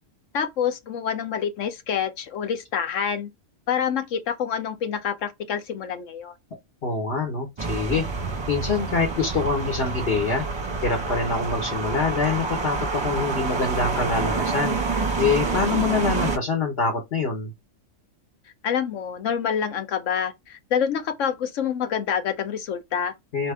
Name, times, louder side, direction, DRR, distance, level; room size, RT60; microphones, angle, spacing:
voice 1, 0.3-3.3 3.7-6.3 18.6-23.1, left 8 dB, 70° left, 1.1 m, -27 dB
voice 2, 6.8-8.1 8.5-10.5 10.8-14.8 15.2-17.5 23.3-23.5, left 4 dB, 50° left, 1.3 m, -25 dB
sound 1, 7.6-16.4, right 4 dB, 25° right, 0.9 m, -27 dB
4.4 x 2.9 x 3.3 m
omnidirectional pair, 1.4 m